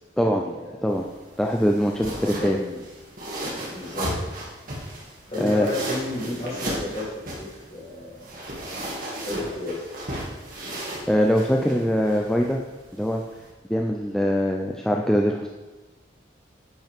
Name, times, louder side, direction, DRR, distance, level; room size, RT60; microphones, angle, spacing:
voice 1, 0.2-0.7 2.0-2.8 3.7-4.2 5.3-8.3 9.2-9.8, left 2 dB, 30° left, -6 dB, 3.3 m, -32 dB
sound 1, 0.9-13.5, right 1 dB, 45° right, 2.2 m, -35 dB
voice 2, 1.4-2.6 5.4-5.7 11.1-12.6 12.9-13.2 13.7-15.5, equal, 5° left, 1 dB, 0.4 m, -22 dB
10.5 x 8.1 x 3.6 m, 1.2 s
head